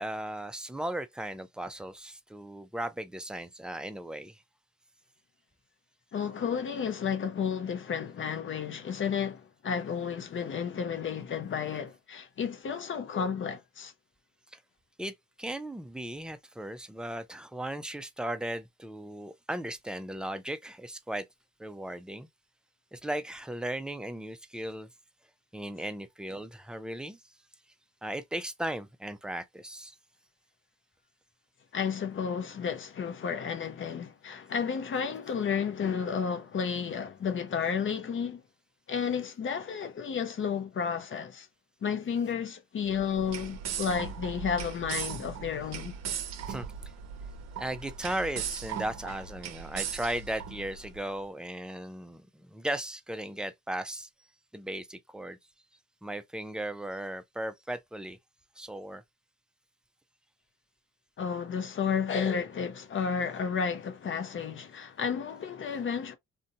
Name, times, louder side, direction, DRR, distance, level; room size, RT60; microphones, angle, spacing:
voice 1, 0.0-4.4 14.5-14.6 15.0-21.3 21.6-22.3 22.9-24.9 25.5-27.2 28.0-30.0 46.5-46.7 47.6-54.1 54.5-55.4 56.0-58.2 58.6-59.0, right 1 dB, 5° right, 0.3 m, -36 dB
voice 2, 6.1-13.9 31.7-38.4 38.9-41.5 41.8-46.0 61.2-66.2, left 6 dB, 40° left, 0.6 m, -32 dB
sound 1, 42.9-51.0, right 7 dB, 60° right, 0.6 m, -38 dB
2.6 x 2.2 x 2.6 m
cardioid pair, 90°, 30 cm